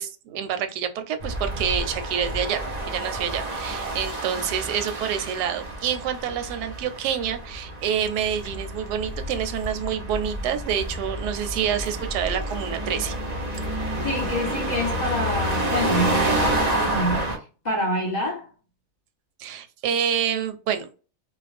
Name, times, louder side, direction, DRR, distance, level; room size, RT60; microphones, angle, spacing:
voice 1, 0.0-13.2 19.4-20.9, right 8 dB, 90° right, 1.2 m, -27 dB
sound 1, 1.2-17.4, right 1 dB, 55° right, 0.4 m, -29 dB
voice 2, 14.0-18.5, equal, 35° left, 0.8 m, -27 dB
2.4 x 2.4 x 3.3 m
omnidirectional pair, 1.7 m